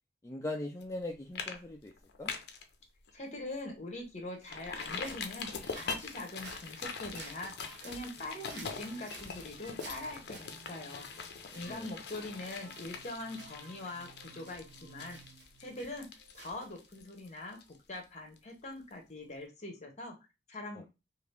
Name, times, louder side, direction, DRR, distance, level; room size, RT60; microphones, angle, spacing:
voice 1, 0.2-1.9 2.2-2.3 11.7-11.9 20.7-20.8, left 2 dB, 15° left, 0 dB, 0.3 m, -40 dB
sound 1, 0.8-1.0 1.4-1.6 1.9-2.6 3.1-3.2 3.6-3.7 4.5-18.0 18.4-18.5, left 5 dB, 65° left, 0.5 m, -43 dB
voice 2, 3.1-11.1 11.5-15.2 15.6-16.1 16.3-20.1 20.5-20.8, left 2 dB, 40° left, 2 dB, 0.9 m, -43 dB
sound 2, 5.0-17.0, right 2 dB, 75° right, 0.8 m, -54 dB
sound 3, 7.6-17.2, right 4 dB, 35° right, 0.7 m, -59 dB
2.8 x 2.4 x 3.3 m, 0.26 s
head